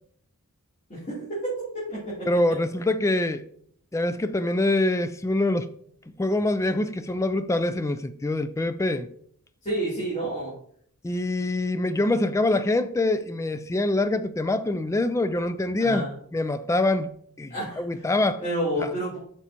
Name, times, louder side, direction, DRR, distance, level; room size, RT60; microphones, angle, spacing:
voice 1, 0.9-1.2 1.9-2.3 9.6-10.5 15.8-16.1 17.5-18.1 18.4-19.2, right 1 dB, 35° left, 3.0 m, -29 dB
voice 2, 2.3-3.4 3.9-5.7 6.2-9.1 11.0-16.1 16.3-17.1 17.4-18.4 18.8-18.9, left 2 dB, 15° left, 0.3 m, -25 dB
7.9 x 6.1 x 2.9 m
head